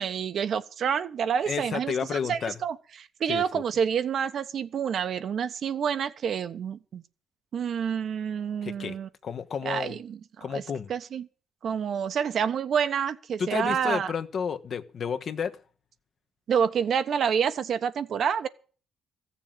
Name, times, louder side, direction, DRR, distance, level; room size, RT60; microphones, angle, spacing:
voice 1, 0.0-7.0 7.5-9.1 9.6-10.6 10.9-11.3 11.6-14.1 16.5-18.5, right 7 dB, 60° right, 1.1 m, -28 dB
voice 2, 1.5-2.6 3.3-3.6 8.6-8.9 9.2-9.9 10.4-10.9 13.4-15.6, left 6 dB, 55° left, 1.3 m, -31 dB
14.5 x 7.2 x 8.9 m
cardioid pair, 90°, 0 cm